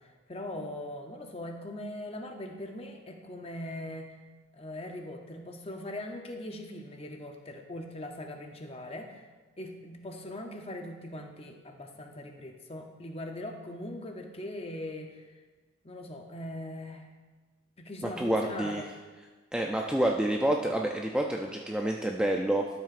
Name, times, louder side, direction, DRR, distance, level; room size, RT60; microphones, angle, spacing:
voice 1, 0.0-4.1 4.5-9.2 9.6-15.2 15.8-17.1 17.8-18.9, left 1 dB, 30° left, 4 dB, 0.7 m, -40 dB
voice 2, 18.2-18.8 19.5-22.7, right 1 dB, 5° right, 1 dB, 0.3 m, -28 dB
12.5 x 7.5 x 2.5 m, 1.3 s
head